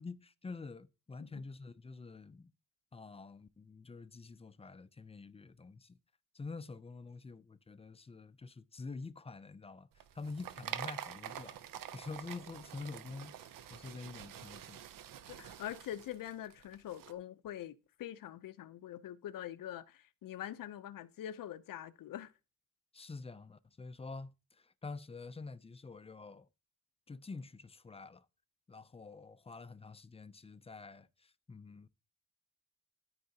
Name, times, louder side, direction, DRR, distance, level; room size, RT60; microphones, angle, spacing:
voice 1, 0.0-2.5 2.9-6.0 6.3-11.6 11.9-13.3 13.7-14.8 15.3-15.4 22.9-24.3 24.6-26.5 27.1-28.3 28.7-31.9, left 4 dB, 20° left, 0.3 m, -47 dB
sound 1, 9.9-17.1, right 10 dB, 85° right, 0.6 m, -47 dB
voice 2, 15.3-22.3, left 11 dB, 85° left, 0.6 m, -44 dB
13.0 x 4.8 x 2.7 m
wide cardioid pair, 105°, 32 cm